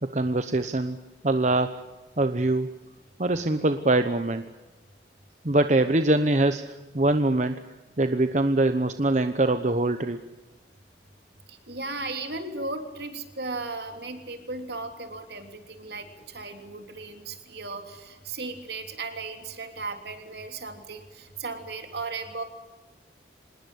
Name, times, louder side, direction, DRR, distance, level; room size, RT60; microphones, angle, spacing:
voice 1, 0.0-1.0 1.2-1.8 2.2-2.7 3.2-4.4 5.4-7.6 8.0-10.2, right 2 dB, 40° right, 9 dB, 1.0 m, -23 dB
voice 2, 11.5-22.4, right 3 dB, 65° right, 6 dB, 3.3 m, -36 dB
26.5 x 20.5 x 8.2 m, 1.1 s
head